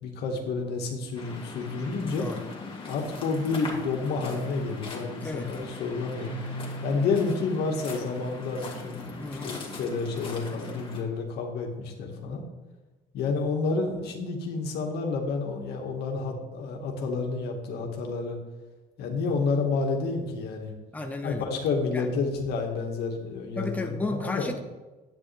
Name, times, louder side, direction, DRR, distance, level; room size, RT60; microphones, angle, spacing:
voice 1, 0.0-2.3 2.9-6.3 6.8-12.4 13.1-18.4 19.0-20.7 21.2-24.5, left 4 dB, 75° left, 2 dB, 1.8 m, -30 dB
Waves surf, 1.1-11.0, left 3 dB, 30° left, 2.2 m, -40 dB
voice 2, 5.2-5.5 9.2-9.6 20.9-21.4 21.9-22.1 23.5-24.6, left 2 dB, 10° left, 4 dB, 0.8 m, -33 dB
Keyboard (musical), 6.2-9.9, right 2 dB, 65° right, 2.4 m, -42 dB
10.0 x 8.8 x 3.4 m, 1.2 s
cardioid pair, 110°, 17 cm